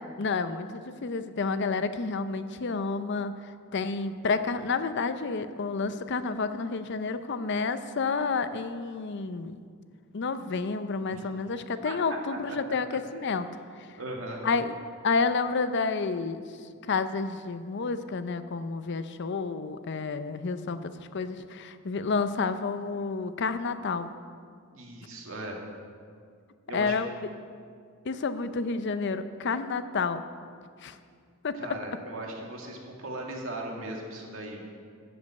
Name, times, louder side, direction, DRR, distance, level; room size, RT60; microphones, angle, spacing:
voice 1, 0.2-3.3 3.7-9.6 10.1-13.5 13.8-13.9 14.4-14.7 15.0-16.4 16.9-24.1 26.7-27.1 28.0-30.2 30.8-31.0 31.4-31.6, left 4 dB, 60° left, 11 dB, 0.6 m, -30 dB
voice 2, 14.0-14.4 24.7-25.6 26.7-27.0 31.5-34.6, right 2 dB, 80° right, -1 dB, 2.1 m, -38 dB
13.0 x 5.3 x 8.3 m, 2.1 s
head